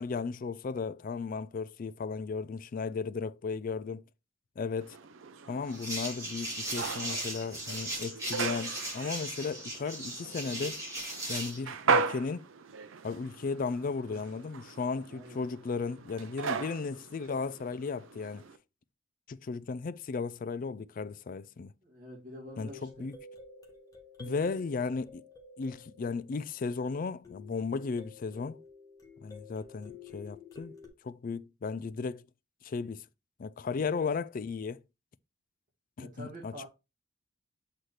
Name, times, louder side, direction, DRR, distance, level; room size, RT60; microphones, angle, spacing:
voice 1, 0.0-4.0 4.6-5.0 5.5-10.8 11.3-12.5 13.0-18.5 19.3-21.7 22.6-23.2 24.2-25.2 25.6-28.6 29.2-30.7 31.0-32.3 32.6-33.1 33.4-34.8 36.0-36.7, left 4 dB, 45° left, 0.3 m, -35 dB
sound 1, 4.8-18.6, right 5 dB, 90° right, 0.6 m, -37 dB
sound 2, 5.7-11.6, right 1 dB, 15° right, 2.5 m, -38 dB
voice 2, 21.8-23.1 24.2-24.6 33.8-33.9 36.0-36.7, equal, 45° right, 2.2 m, -47 dB
sound 3, 22.5-26.7 27.2-30.9, left 3 dB, 20° left, 1.2 m, -51 dB
7.8 x 4.1 x 3.2 m
head